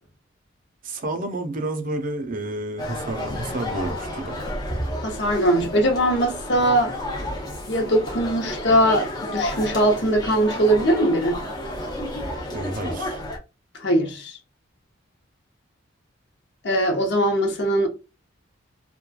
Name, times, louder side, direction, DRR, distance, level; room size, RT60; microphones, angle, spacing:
voice 1, 0.8-4.4 12.5-13.2, right 2 dB, 40° right, 0.5 m, -30 dB
sound 1, 2.8-13.4, left 1 dB, 20° left, 0.7 m, -31 dB
voice 2, 5.0-6.9 7.7-11.4 13.8-14.4 16.6-17.9, right 1 dB, 55° left, 0.7 m, -21 dB
3.0 x 2.2 x 2.3 m
head